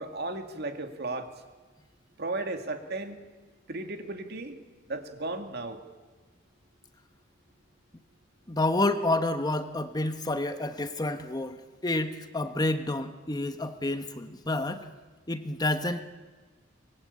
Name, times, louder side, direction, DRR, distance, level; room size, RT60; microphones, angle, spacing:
voice 1, 0.0-1.3 2.2-3.2 3.7-4.5 4.9-5.8, right 2 dB, 55° right, 6 dB, 2.4 m, -35 dB
voice 2, 8.5-14.9 15.3-16.1, left 2 dB, 20° left, 9 dB, 1.1 m, -29 dB
24.5 x 21.5 x 8.6 m, 1.3 s
head